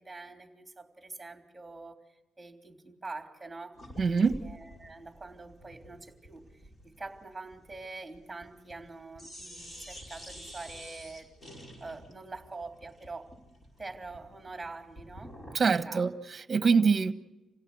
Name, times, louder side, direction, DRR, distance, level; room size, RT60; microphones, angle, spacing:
voice 1, 0.0-2.0 2.4-3.8 4.4-13.3 13.8-15.4 15.7-16.0, right 3 dB, 15° right, 4 dB, 3.4 m, -45 dB
sound 1, 3.8-8.9 9.1-15.7, equal, 25° left, 5.1 m, -49 dB
voice 2, 4.0-4.4 15.5-17.1, right 5 dB, 35° right, 11 dB, 1.3 m, -25 dB
27.0 x 17.0 x 7.9 m, 1.0 s
cardioid pair, 90°, 0 cm